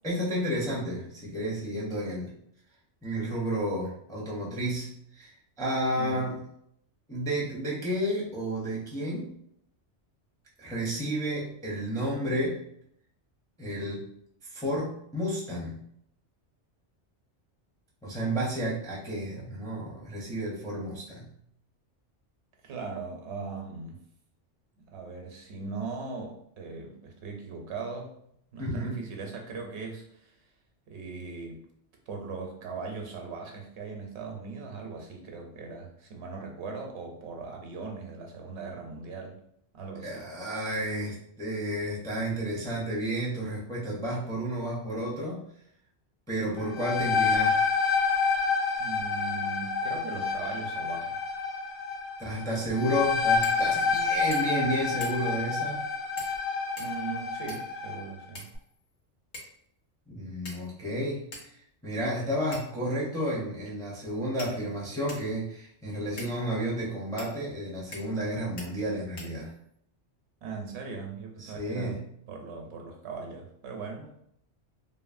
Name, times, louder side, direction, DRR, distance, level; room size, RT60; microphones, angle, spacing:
voice 1, 0.0-2.3 3.0-5.3 5.6-6.5 7.1-9.3 10.6-12.6 13.6-14.1 14.4-15.8 18.0-21.3 28.6-28.9 40.0-45.4 46.3-47.7 52.2-55.9 60.1-69.5 71.4-72.0, equal, 5° left, -4 dB, 0.4 m, -31 dB
voice 2, 5.9-6.3 22.6-24.0 24.9-28.1 28.5-30.4 30.9-31.6 32.1-39.3 39.7-40.2 48.8-51.2 52.5-53.0 56.8-58.5 70.4-74.2, right 4 dB, 75° right, 2 dB, 0.9 m, -39 dB
sound 1, 46.6-58.1, left 5 dB, 55° left, 0.8 m, -28 dB
sound 2, 53.4-53.6 53.9-54.0 54.3-54.6 55.0-55.4 56.2-56.4 56.8-57.8 58.3-58.9 59.3-59.6 60.5-60.9 61.3-61.5 62.5-62.9 63.7-63.8 64.4-65.3 66.2-66.4 67.2-67.3 67.9-68.3 68.6-68.7 69.2-69.7, left 2 dB, 70° left, 1.1 m, -44 dB
2.7 x 2.5 x 2.4 m, 0.70 s
omnidirectional pair, 1.2 m